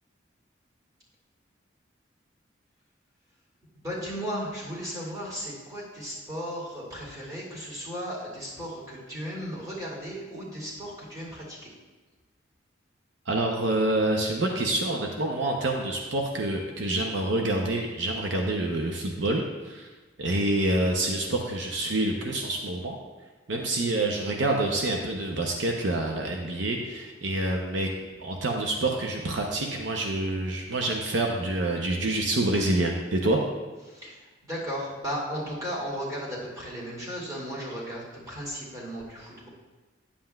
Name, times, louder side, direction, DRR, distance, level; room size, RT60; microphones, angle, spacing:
voice 1, 3.8-11.6 33.9-34.1 34.4-39.5, equal, 20° right, -5 dB, 2.3 m, -35 dB
voice 2, 13.3-19.9 20.2-23.0 23.5-27.9 28.2-33.4, right 2 dB, 70° right, 1 dB, 0.7 m, -27 dB
10.0 x 7.5 x 2.3 m, 1.3 s
head